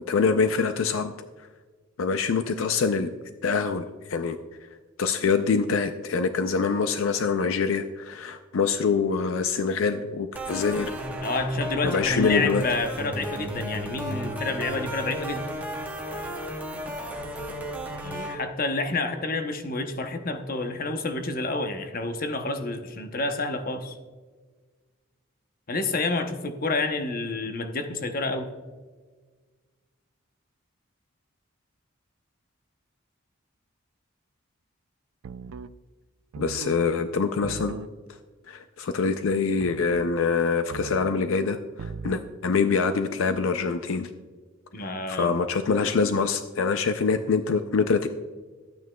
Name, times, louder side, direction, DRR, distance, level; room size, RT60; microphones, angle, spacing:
voice 1, 0.1-1.1 2.0-3.1 3.4-4.4 5.0-10.9 11.8-12.6 36.4-37.8 38.5-44.1 45.1-48.1, left 5 dB, 70° left, 9 dB, 0.4 m, -25 dB
sound 1, 10.3-18.4, equal, 10° right, 1.0 m, -33 dB
voice 2, 11.2-15.5 18.0-24.0 25.7-28.5 44.7-45.4, left 3 dB, 45° left, 7 dB, 0.8 m, -29 dB
sound 2, 35.2-35.7 36.3-36.8 37.4-37.9 39.6-40.1 40.7-41.2 41.8-42.3, right 5 dB, 85° right, 0.4 m, -38 dB
13.0 x 9.2 x 2.2 m, 1.4 s
head